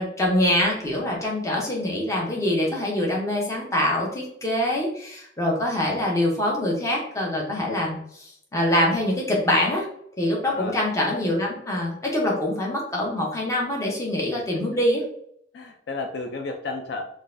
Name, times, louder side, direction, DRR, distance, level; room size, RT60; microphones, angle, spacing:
voice 1, 0.0-8.2 8.5-9.9 10.2-15.0, left 1 dB, 15° left, -2 dB, 0.7 m, -24 dB
voice 2, 10.4-10.8 15.5-17.0, left 3 dB, 60° left, 4 dB, 0.3 m, -32 dB
3.8 x 2.4 x 2.5 m, 0.70 s
head